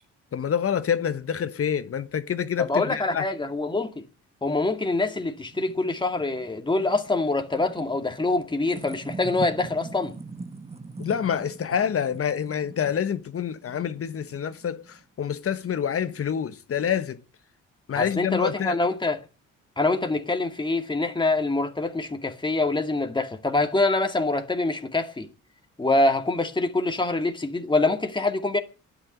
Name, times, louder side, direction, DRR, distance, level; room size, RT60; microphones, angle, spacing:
voice 1, 0.3-3.2 11.0-17.2 17.9-18.8, left 8 dB, 50° left, 1.2 m, -27 dB
voice 2, 2.6-4.0 4.4-10.1 18.0-19.2 19.8-25.3 25.8-28.6, left 2 dB, 15° left, 2.2 m, -25 dB
sound 1, 4.9-15.0, right 3 dB, 20° right, 1.3 m, -42 dB
12.0 x 10.0 x 9.7 m
cardioid pair, 90°, 30 cm